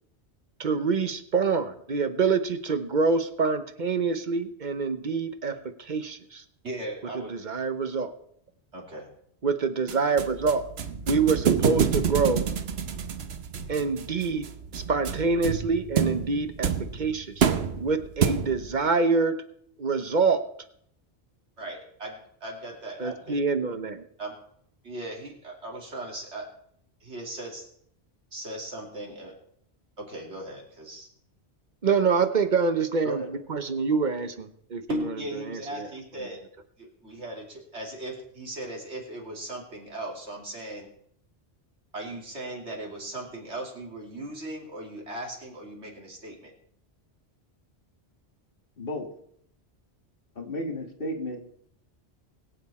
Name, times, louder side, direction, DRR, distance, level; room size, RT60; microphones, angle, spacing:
voice 1, 0.6-6.4 7.1-8.1 9.4-10.6 11.1-12.4 13.7-17.4 17.8-19.3 19.8-20.4 23.0-24.0 31.8-34.8 35.4-35.9, right 4 dB, 45° right, 10 dB, 0.9 m, -26 dB
voice 2, 6.6-7.3 8.7-9.1 21.6-23.4 24.2-24.4 24.8-26.5 27.0-27.7 28.3-29.4 30.0-31.1 33.0-33.3 34.9-36.4 36.8-40.9 41.9-46.5, right 1 dB, 85° right, 0 dB, 3.2 m, -37 dB
sound 1, 9.9-18.8, right 7 dB, 70° right, 1.1 m, -28 dB
voice 3, 50.4-51.4, left 1 dB, 55° left, 3 dB, 1.9 m, -33 dB
22.0 x 7.8 x 4.3 m, 0.69 s
omnidirectional pair, 1.1 m